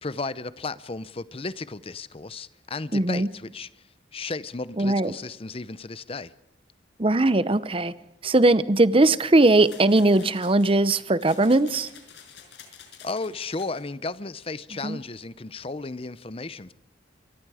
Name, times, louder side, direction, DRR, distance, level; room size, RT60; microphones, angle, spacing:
voice 1, 0.0-3.7 4.1-6.3 13.0-16.7, left 3 dB, 30° left, 0.7 m, -34 dB
voice 2, 2.9-3.3 4.8-5.1 7.0-7.9 8.2-11.9 14.8-15.0, right 2 dB, 30° right, 0.7 m, -20 dB
sound 1, 9.4-13.8, left 7 dB, 65° left, 5.6 m, -49 dB
28.5 x 22.5 x 4.9 m
head